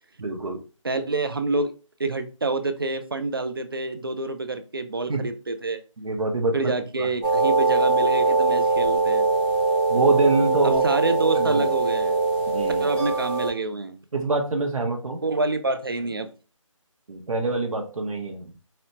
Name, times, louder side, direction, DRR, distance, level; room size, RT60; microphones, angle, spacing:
voice 1, 0.2-0.6 5.1-5.2 6.0-6.7 7.0-7.1 9.9-10.8 11.3-11.7 12.5-12.8 14.1-15.2 17.1-18.5, right 3 dB, 85° right, 2 dB, 0.9 m, -25 dB
voice 2, 0.8-1.7 2.0-5.8 6.5-9.3 10.6-12.2 12.8-14.0 15.2-16.3, right 3 dB, 45° right, 8 dB, 0.4 m, -27 dB
sound 1, 7.2-13.5, right 3 dB, ahead, 0.7 m, -22 dB
4.1 x 2.1 x 2.8 m, 0.34 s
figure-of-eight pair, 170°, 17 cm